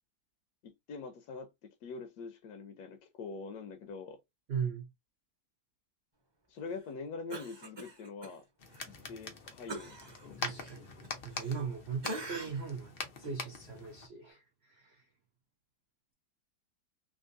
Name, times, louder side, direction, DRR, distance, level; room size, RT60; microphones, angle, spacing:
voice 1, 0.6-4.2 6.5-8.5 8.8-10.2, left 4 dB, 70° left, 1.0 m, -44 dB
voice 2, 4.5-4.9 10.4-10.8 11.2-15.0, right 6 dB, 85° right, 0.5 m, -39 dB
Cough, 7.3-8.3 8.7-8.9 9.7-11.7 12.0-12.7 13.2-13.4, right 2 dB, 25° right, 0.5 m, -44 dB
sound 1, 8.6-14.1, left 4 dB, 90° left, 0.5 m, -44 dB
3.5 x 2.5 x 2.5 m
omnidirectional pair, 2.0 m